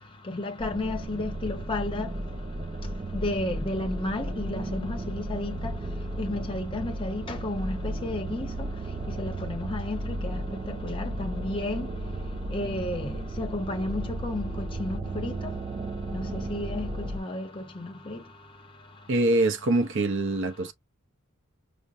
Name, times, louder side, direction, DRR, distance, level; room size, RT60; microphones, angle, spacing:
voice 1, 0.3-2.1 3.1-5.7 6.2-8.5 9.1-10.4 10.7-11.9 12.5-15.5 16.1-18.2, left 2 dB, 25° left, 0.6 m, -32 dB
sound 1, 0.6-17.2, right 1 dB, 25° right, 0.3 m, -34 dB
voice 2, 19.1-20.7, right 2 dB, 60° right, 0.6 m, -24 dB
5.0 x 2.1 x 2.5 m
head